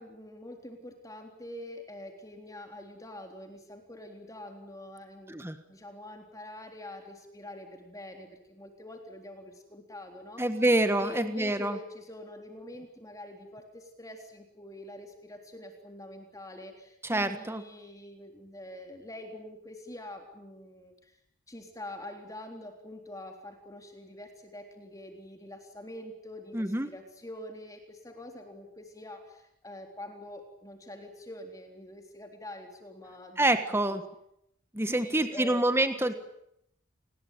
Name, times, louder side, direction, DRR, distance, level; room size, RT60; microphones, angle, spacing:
voice 1, 0.0-5.4 5.7-10.4 11.0-21.2 21.5-34.0 34.8-35.7 36.0-36.1, left 1 dB, 15° left, 4 dB, 3.6 m, -45 dB
voice 2, 10.4-11.8 17.0-17.6 26.5-26.9 33.4-34.0 34.7-36.1, right 1 dB, 10° right, 9 dB, 1.6 m, -26 dB
28.5 x 20.5 x 9.2 m, 0.76 s
head